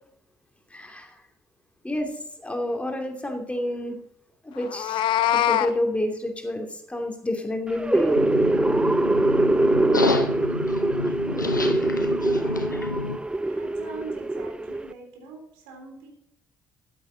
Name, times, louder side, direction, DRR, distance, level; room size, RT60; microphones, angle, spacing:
voice 1, 0.7-1.2 1.8-2.1 2.4-4.0 4.4-5.0 5.3-8.2, left 1 dB, 10° left, 3 dB, 2.7 m, -29 dB
Meow, 4.6-5.7, left 12 dB, 55° left, 0.7 m, -22 dB
sound 1, 7.7-14.9, right 2 dB, 10° right, 0.5 m, -23 dB
sound 2, 8.1-13.2, left 3 dB, 85° left, 0.8 m, -29 dB
voice 2, 13.4-16.1, right 4 dB, 65° right, 2 dB, 3.5 m, -41 dB
14.0 x 9.5 x 4.1 m, 0.72 s
figure-of-eight pair, 45°, 10 cm